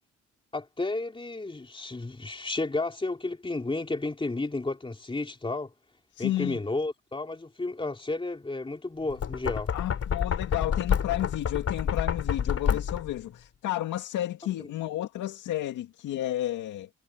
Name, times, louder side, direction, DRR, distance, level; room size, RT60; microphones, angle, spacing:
voice 1, 0.5-5.7 6.2-9.7 14.6-14.7, left 2 dB, 15° left, 3.4 m, -32 dB
voice 2, 6.1-6.6 9.7-16.9, left 14 dB, 85° left, 2.1 m, -32 dB
Knock, 9.1-13.2, left 7 dB, 50° left, 3.2 m, -28 dB
cardioid pair, 90°, 30 cm